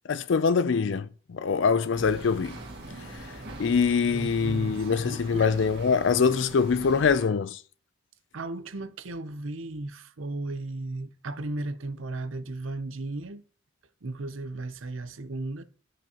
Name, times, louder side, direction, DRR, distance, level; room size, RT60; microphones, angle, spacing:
voice 1, 0.1-2.6 3.6-7.6, left 5 dB, 65° left, 0.4 m, -24 dB
sound 1, 1.9-7.2, right 2 dB, 50° right, 2.1 m, -42 dB
voice 2, 4.1-5.6 8.3-13.4 14.0-15.6, right 2 dB, 75° right, 0.7 m, -35 dB
14.5 x 5.1 x 2.9 m
head